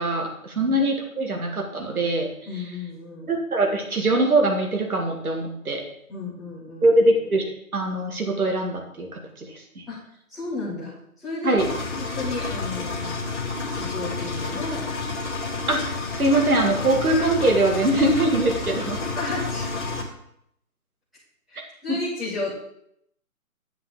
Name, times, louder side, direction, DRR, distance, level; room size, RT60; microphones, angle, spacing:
voice 1, 0.0-2.3 3.3-5.8 6.8-7.4 7.7-9.5 9.8-9.9 11.4-11.7 15.7-19.0 21.9-22.0, right 1 dB, 75° right, 2 dB, 2.1 m, -22 dB
voice 2, 2.5-3.3 6.1-6.9 9.9-10.0 10.3-11.6 12.0-13.4 13.7-14.9 19.1-19.8 21.5-22.6, left 3 dB, ahead, -13 dB, 0.8 m, -33 dB
Engine, 11.6-20.0, left 3 dB, 50° left, 2.0 m, -30 dB
9.0 x 7.4 x 3.7 m, 0.73 s
figure-of-eight pair, 150°, 44 cm